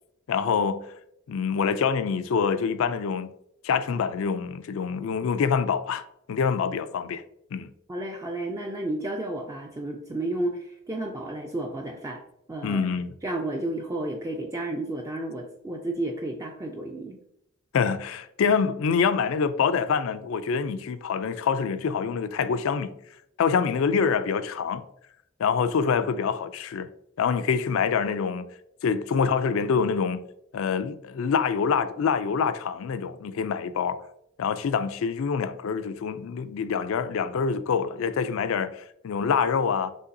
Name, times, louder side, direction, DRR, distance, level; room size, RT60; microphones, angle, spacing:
voice 1, 0.3-0.8 1.3-3.3 3.6-7.2 7.5-7.7 12.6-13.1 17.7-22.9 23.4-24.8 25.4-26.9 27.2-28.4 28.8-30.2 30.5-34.0 34.4-39.9, left 6 dB, 65° left, 0.3 m, -26 dB
voice 2, 7.9-12.2 12.5-12.8 13.2-17.2, right 1 dB, 15° right, 0.3 m, -32 dB
5.5 x 3.2 x 2.6 m
head